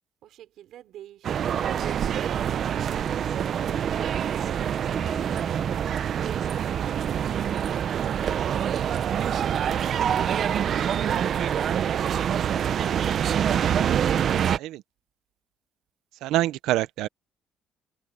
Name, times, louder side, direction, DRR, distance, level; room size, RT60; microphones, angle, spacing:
voice 1, 0.2-2.4, right 12 dB, 60° right, 5.2 m, -49 dB
sound 1, 1.2-14.6, right 9 dB, 40° right, 0.5 m, -25 dB
sound 2, 4.9-8.4, right 2 dB, 10° right, 6.6 m, -44 dB
voice 2, 14.3-14.8 16.2-17.1, right 15 dB, 85° right, 0.7 m, -26 dB
cardioid pair, 160°, 0 cm